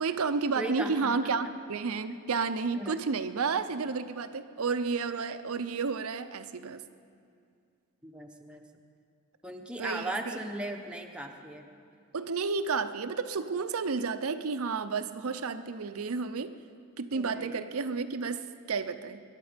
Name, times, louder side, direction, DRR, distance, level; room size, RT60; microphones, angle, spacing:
voice 1, 0.0-6.8 9.8-10.4 12.1-16.6 17.0-19.2, right 4 dB, 75° right, 11 dB, 0.6 m, -31 dB
voice 2, 0.6-1.1 2.1-2.2 2.7-3.0 8.0-8.6 9.4-11.6 17.1-17.6, right 1 dB, 5° right, 2 dB, 0.9 m, -37 dB
21.5 x 11.5 x 5.1 m, 2.4 s
head